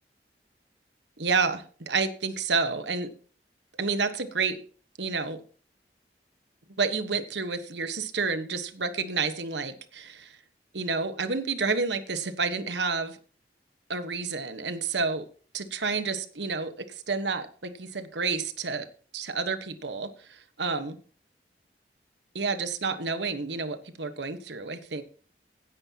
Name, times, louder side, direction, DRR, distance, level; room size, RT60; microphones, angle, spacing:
voice 1, 1.2-3.1 3.8-4.6 5.0-5.4 6.8-10.4 10.7-13.2 13.9-15.2 15.5-18.9 19.1-21.0 22.3-25.0, right 4 dB, 90° right, 10 dB, 1.3 m, -30 dB
16.5 x 9.8 x 2.9 m, 0.41 s
head